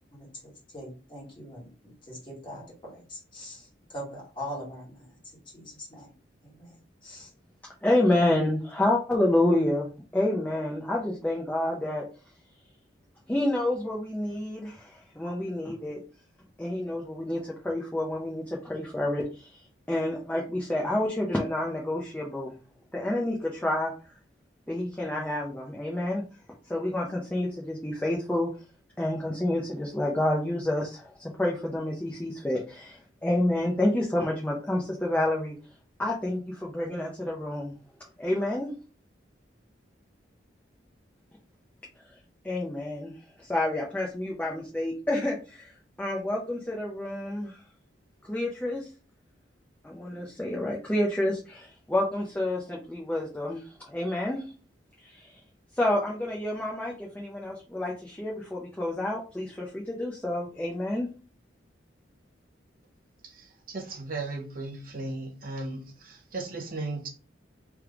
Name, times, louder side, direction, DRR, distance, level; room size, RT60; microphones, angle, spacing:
voice 1, 0.1-6.1 6.4-7.3, equal, 25° left, -3 dB, 1.6 m, -42 dB
voice 2, 7.8-12.1 13.3-16.0 16.6-19.6 19.9-22.5 22.9-23.9 24.7-26.2 26.7-28.5 29.0-35.6 36.0-37.7 38.2-38.7 42.4-43.1 43.4-47.6 48.3-48.9 49.8-54.5 55.0-55.4 55.8-61.1, left 1 dB, 10° left, -3 dB, 0.6 m, -29 dB
voice 3, 63.2-67.1, right 2 dB, 45° right, 2 dB, 0.8 m, -36 dB
3.4 x 3.1 x 3.6 m, 0.35 s
head